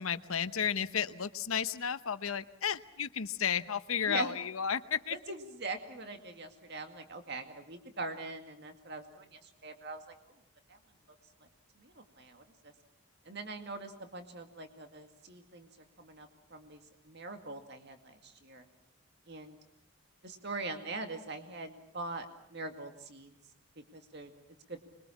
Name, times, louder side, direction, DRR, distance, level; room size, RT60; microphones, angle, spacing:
voice 1, 0.0-5.2, left 7 dB, 80° left, 13 dB, 1.0 m, -33 dB
voice 2, 4.0-4.3 5.1-10.0 10.7-10.8 11.8-12.7 13.3-15.7 16.0-16.8 17.1-18.7 19.3-19.6 20.2-22.3 22.5-23.3 23.9-24.3 24.7-24.8, right 3 dB, 50° right, 6 dB, 2.1 m, -42 dB
25.0 x 22.5 x 7.2 m, 0.75 s
head